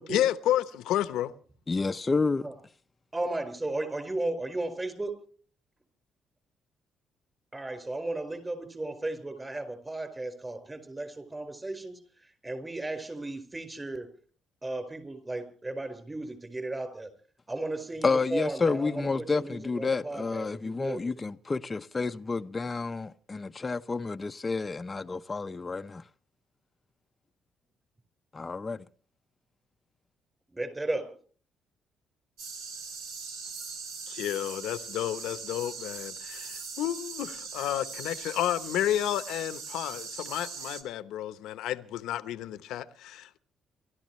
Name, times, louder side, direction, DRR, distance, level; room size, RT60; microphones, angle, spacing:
voice 1, 0.1-1.3 34.1-43.4, left 12 dB, 85° left, 0.9 m, -31 dB
voice 2, 1.7-2.4 18.0-26.0 28.3-28.8, left 4 dB, 25° left, 0.7 m, -30 dB
voice 3, 3.1-5.2 7.5-12.0 12.4-14.1 14.6-17.1 17.5-21.2 30.5-31.1, right 2 dB, 20° right, 5.0 m, -35 dB
sound 1, 32.4-40.8, right 5 dB, 85° right, 2.6 m, -40 dB
28.5 x 13.0 x 3.2 m
cardioid pair, 95°, 0 cm